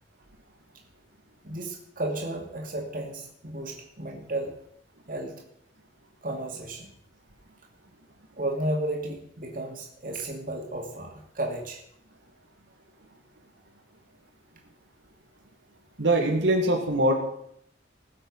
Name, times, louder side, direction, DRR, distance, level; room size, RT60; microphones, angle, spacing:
voice 1, 1.4-4.5 5.1-5.4 6.2-6.9 8.4-11.8, right 1 dB, 50° right, 1 dB, 2.7 m, -33 dB
voice 2, 16.0-17.2, right 1 dB, 90° right, 2 dB, 2.3 m, -22 dB
19.5 x 7.8 x 5.6 m, 0.69 s
head